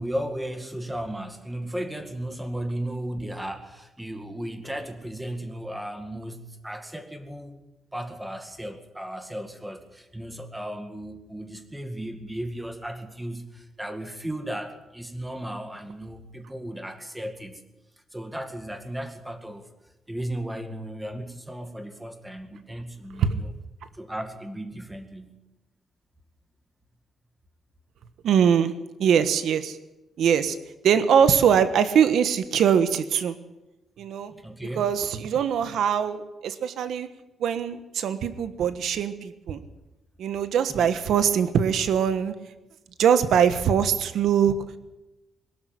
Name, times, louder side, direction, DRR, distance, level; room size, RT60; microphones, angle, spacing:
voice 1, 0.0-7.6 7.9-17.6 18.1-19.7 20.1-23.5 23.9-25.4 34.3-34.9 40.7-40.9, right 1 dB, 5° right, 7 dB, 2.1 m, -35 dB
voice 2, 28.2-28.7 29.0-29.8 30.2-30.6 30.8-33.4 34.0-34.3 34.8-37.1 37.4-39.6 40.2-42.3 43.0-44.8, right 8 dB, 75° right, 11 dB, 1.3 m, -22 dB
22.5 x 12.5 x 9.6 m, 1.0 s
wide cardioid pair, 155°, 0 cm